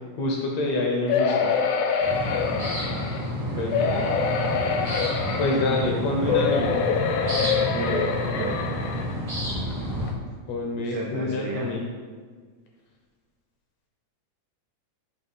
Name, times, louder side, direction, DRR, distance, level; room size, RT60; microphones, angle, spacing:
voice 1, 0.1-1.5 3.6-4.0 5.4-6.7 10.5-11.8, left 2 dB, 70° left, 0 dB, 1.8 m, -27 dB
sound 1, 1.1-3.2 3.7-5.9 6.3-9.1 9.7-9.8 10.1-10.2, left 6 dB, 90° left, 1.4 m, -25 dB
sound 2, 2.0-10.1, equal, 20° right, 0.6 m, -30 dB
voice 2, 3.2-4.1 6.2-6.4 7.7-8.6 10.7-11.8, right 3 dB, 85° right, -1 dB, 1.3 m, -34 dB
6.1 x 2.9 x 5.4 m, 1.5 s
omnidirectional pair, 3.5 m